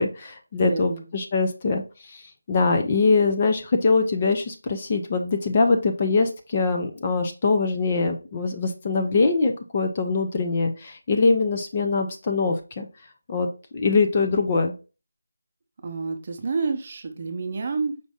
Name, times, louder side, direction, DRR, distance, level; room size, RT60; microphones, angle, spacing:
voice 1, 0.0-12.9 13.3-14.7, left 4 dB, 25° left, 4 dB, 0.4 m, -23 dB
voice 2, 0.6-1.0 15.8-18.0, right 4 dB, 30° right, 4 dB, 0.6 m, -29 dB
5.1 x 2.6 x 3.5 m, 0.33 s
figure-of-eight pair, 175°, 0 cm